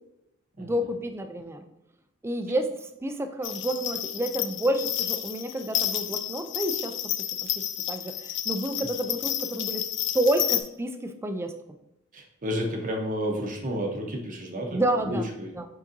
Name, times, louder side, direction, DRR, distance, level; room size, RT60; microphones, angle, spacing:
voice 1, 0.6-1.6 2.2-7.1 7.6-9.8 10.1-11.5 14.7-15.3 15.5-15.7, right 1 dB, 15° right, 7 dB, 0.4 m, -29 dB
sound 1, 3.4-10.6, left 11 dB, 60° left, 0.4 m, -30 dB
voice 2, 12.1-15.5, equal, 40° right, 1 dB, 0.8 m, -31 dB
5.2 x 3.9 x 2.6 m, 0.84 s
head